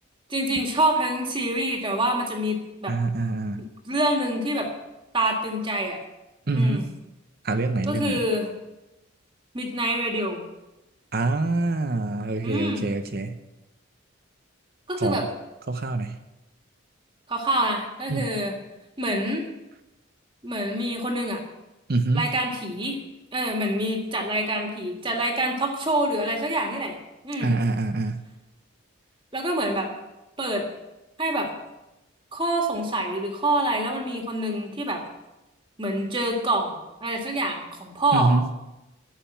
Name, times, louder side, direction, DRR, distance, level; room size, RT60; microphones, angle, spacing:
voice 1, 0.3-3.0 3.6-4.7 5.1-6.0 6.5-6.9 7.9-8.5 9.5-10.4 12.4-12.8 14.9-15.2 17.3-18.5 19.0-19.4 20.4-21.4 22.1-23.0 23.3-27.0 27.2-27.5 29.3-29.9 30.4-30.6 31.2-31.5 32.3-35.0 35.8-38.3, right 1 dB, 25° right, 2 dB, 1.9 m, -26 dB
voice 2, 2.9-3.6 6.5-6.8 7.4-8.2 11.1-13.4 15.0-15.2 15.7-16.2 18.1-18.3 21.9-22.2 27.4-28.2 38.1-38.6, right 2 dB, 45° right, 8 dB, 0.8 m, -25 dB
11.5 x 7.6 x 8.8 m, 0.98 s
head